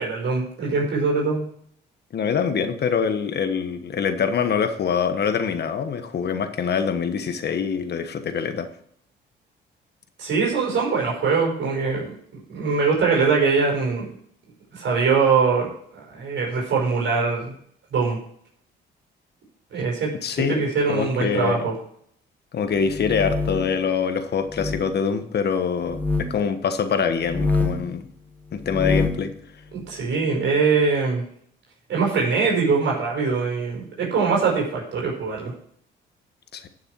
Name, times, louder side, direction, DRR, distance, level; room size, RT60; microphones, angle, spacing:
voice 1, 0.0-1.5 10.2-12.1 12.5-14.1 14.7-17.5 17.9-18.2 19.7-21.8 29.7-31.2 31.9-35.5, right 4 dB, 70° right, -2 dB, 5.2 m, -22 dB
voice 2, 2.1-8.7 20.2-20.6 20.9-21.6 22.5-28.1 28.5-29.3 36.5-36.7, left 6 dB, 55° left, 8 dB, 1.4 m, -24 dB
sound 1, 22.8-23.8 24.5-24.9 25.9-26.3 27.2-27.9 28.6-29.3, left 3 dB, 10° left, 1.2 m, -25 dB
12.0 x 6.6 x 4.8 m, 0.65 s
cardioid pair, 90°, 20 cm